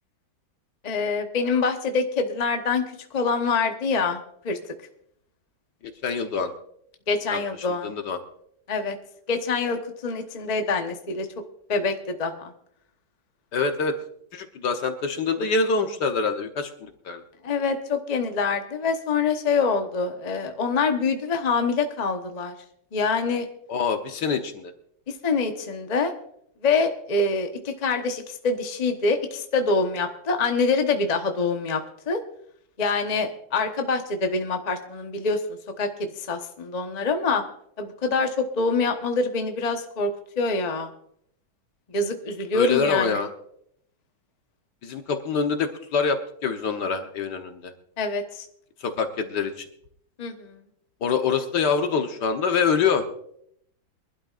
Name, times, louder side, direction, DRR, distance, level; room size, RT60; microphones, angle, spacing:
voice 1, 0.8-2.8 3.1-4.2 4.4-4.6 7.1-7.9 8.7-9.0 9.3-11.3 11.7-12.5 17.4-22.5 22.9-23.5 25.1-26.1 26.6-31.8 32.1-32.2 32.8-37.4 37.8-40.1 40.4-40.9 41.9-43.2 48.0-48.5 50.2-50.6, left 4 dB, 30° left, 5 dB, 0.8 m, -25 dB
voice 2, 6.0-6.5 7.3-7.4 7.8-8.2 13.5-14.0 14.3-17.2 23.7-24.7 42.5-43.3 44.8-47.7 48.8-49.7 51.0-53.0, left 5 dB, 65° left, 6 dB, 1.6 m, -25 dB
23.5 x 12.0 x 2.5 m, 0.70 s
omnidirectional pair, 2.1 m